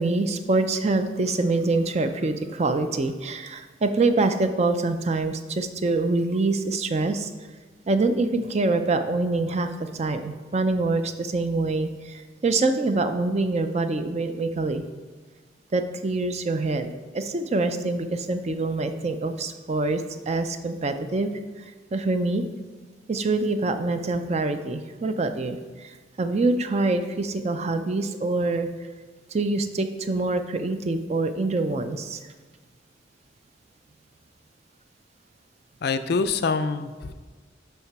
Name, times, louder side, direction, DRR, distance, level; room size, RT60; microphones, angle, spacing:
voice 1, 0.0-7.3 7.9-14.8 15.7-16.9 17.1-21.3 21.6-21.7 21.9-22.5 23.1-28.7 29.3-32.2, right 3 dB, 35° right, 9 dB, 0.5 m, -25 dB
voice 2, 35.8-37.1, left 4 dB, 60° left, 10 dB, 0.4 m, -25 dB
6.9 x 5.8 x 4.6 m, 1.3 s
head